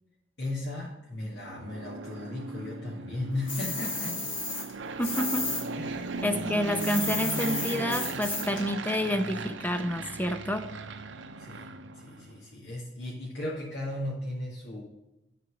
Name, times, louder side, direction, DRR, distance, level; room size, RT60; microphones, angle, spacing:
voice 1, 0.4-4.3 5.8-6.1 11.4-14.8, left 1 dB, 70° left, -6 dB, 2.1 m, -36 dB
Fixed-wing aircraft airplane, 1.3-12.4, right 3 dB, 80° right, 0.7 m, -37 dB
sound 1, 3.5-5.6 5.9-8.6, left 3 dB, 90° left, 2.7 m, -33 dB
voice 2, 5.0-5.5 6.2-10.7, left 1 dB, 10° left, 8 dB, 0.7 m, -29 dB
9.9 x 4.3 x 6.4 m, 0.93 s
head